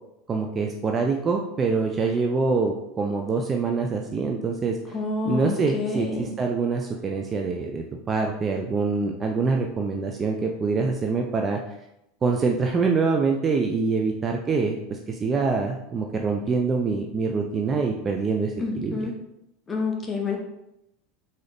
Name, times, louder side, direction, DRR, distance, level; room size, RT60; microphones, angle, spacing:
voice 1, 0.3-5.0 5.2-11.6 12.2-19.1, right 4 dB, 20° right, 2 dB, 0.4 m, -25 dB
voice 2, 4.9-6.3 18.6-19.1 19.7-20.4, left 3 dB, 15° left, -1 dB, 0.7 m, -28 dB
4.0 x 3.8 x 3.4 m, 0.85 s
supercardioid pair, 145°, 0 cm